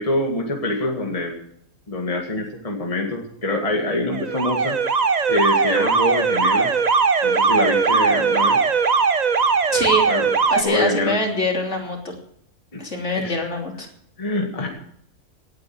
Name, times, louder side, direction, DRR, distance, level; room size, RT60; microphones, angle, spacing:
voice 1, 0.0-1.4 1.9-4.8 5.3-6.7 7.2-8.6 10.1-10.3 10.6-11.2 12.7-12.8 13.1-13.4 14.2-14.7, left 1 dB, 25° left, 1 dB, 2.1 m, -25 dB
Alarm, 4.1-10.6, right 5 dB, 35° right, 0.8 m, -19 dB
voice 2, 9.7-10.0 10.5-12.1 12.8-13.9, left 1 dB, 50° left, 1 dB, 3.4 m, -23 dB
18.5 x 8.9 x 6.0 m, 0.69 s
omnidirectional pair, 1.5 m